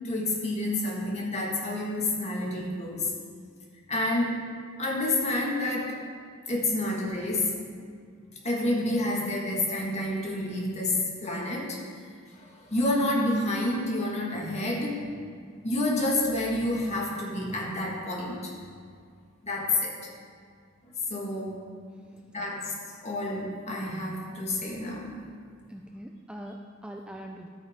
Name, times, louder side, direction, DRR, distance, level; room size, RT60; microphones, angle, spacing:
voice 1, 0.0-3.1 3.9-4.4 4.8-6.0 6.5-7.6 8.4-11.8 12.4-15.1 15.6-18.5 19.4-19.9 20.8-21.6 22.2-22.7 23.0-25.2, left 1 dB, 35° left, -2 dB, 1.7 m, -29 dB
voice 2, 25.7-27.5, right 1 dB, 5° right, 1 dB, 0.4 m, -42 dB
12.0 x 8.9 x 3.6 m, 2.1 s
head